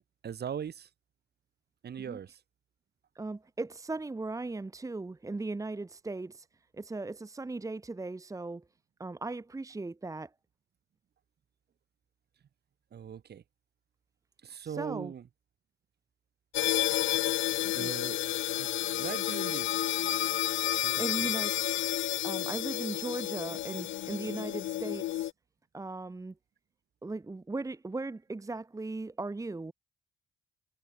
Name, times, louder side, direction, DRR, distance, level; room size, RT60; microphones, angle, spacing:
voice 1, 0.2-0.9 1.8-2.4 12.9-13.4 14.4-15.2 17.7-18.7 19.0-19.8 20.8-21.3, right 8 dB, 55° right, 4.1 m, -40 dB
voice 2, 3.1-6.5 6.7-8.6 9.0-10.3 14.6-15.1 17.6-17.9 21.0-21.5 22.2-25.3 25.7-26.3 27.0-29.7, right 3 dB, 15° right, 1.2 m, -38 dB
sound 1, 16.5-25.3, left 14 dB, 75° left, 0.8 m, -31 dB
cardioid pair, 90°, 20 cm